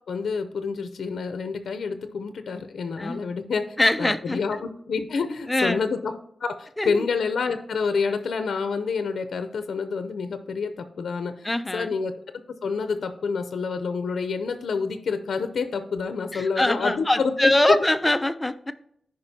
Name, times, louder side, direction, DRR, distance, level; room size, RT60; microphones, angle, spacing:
voice 1, 0.1-6.1 6.4-12.2 12.6-17.8, left 5 dB, 75° left, 8 dB, 0.5 m, -28 dB
voice 2, 3.8-4.4 5.3-5.8 6.8-7.1 11.4-12.0 16.3-18.7, left 1 dB, 10° left, 11 dB, 0.4 m, -23 dB
14.0 x 5.2 x 2.7 m, 0.71 s
wide cardioid pair, 155°, 0 cm